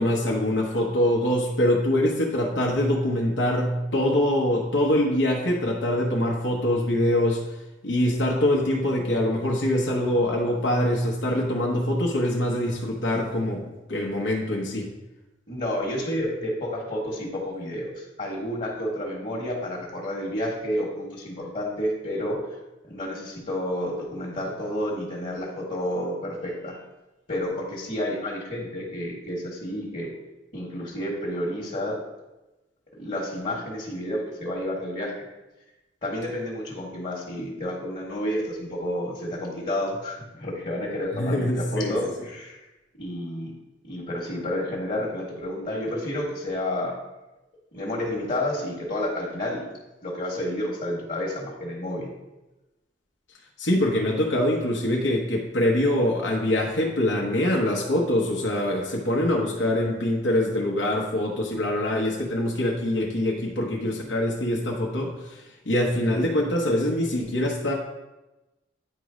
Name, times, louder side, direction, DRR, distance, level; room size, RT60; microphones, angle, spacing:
voice 1, 0.0-7.4 7.8-14.9 41.1-42.0 53.6-67.7, left 1 dB, 75° left, -2 dB, 0.9 m, -24 dB
voice 2, 15.5-22.4 22.9-26.8 27.3-30.1 30.5-32.0 33.0-35.1 36.0-42.6 43.0-43.5 43.8-47.0 47.7-49.6 50.0-52.1, left 1 dB, 45° left, -4 dB, 1.3 m, -30 dB
9.2 x 3.1 x 4.9 m, 1.0 s
head